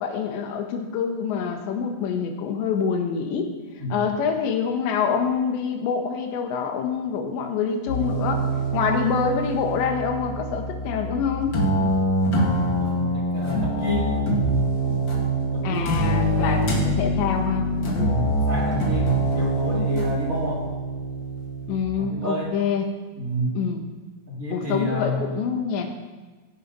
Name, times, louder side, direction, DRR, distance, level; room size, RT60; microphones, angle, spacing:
voice 1, 0.0-3.5 3.9-8.5 8.7-11.6 15.6-18.1 21.7-22.8 23.5-23.8 24.5-25.9, left 6 dB, 70° left, 4 dB, 3.4 m, -26 dB
voice 2, 3.8-4.2 12.3-14.2 15.5-16.6 17.9-20.7 22.0-22.6 23.2-23.6 24.3-25.2, left 1 dB, 30° right, -3 dB, 1.4 m, -29 dB
sound 1, 7.9-21.8, right 1 dB, 50° left, 1.3 m, -24 dB
16.0 x 8.6 x 5.4 m, 1.3 s
omnidirectional pair, 5.6 m